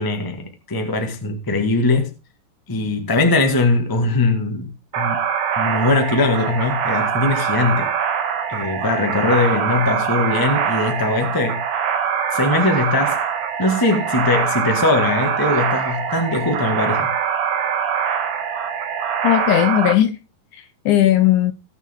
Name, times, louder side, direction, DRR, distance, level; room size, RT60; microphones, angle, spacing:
voice 1, 0.0-2.1 2.7-5.2 5.6-7.9 8.5-11.6 12.3-13.2 13.6-17.1, left 3 dB, 25° left, 0.5 m, -20 dB
sound 1, 4.9-19.9, right 7 dB, 65° right, 2.6 m, -23 dB
voice 2, 19.2-20.2 20.5-21.5, left 12 dB, 75° left, 1.9 m, -17 dB
19.5 x 7.0 x 3.7 m
omnidirectional pair, 4.1 m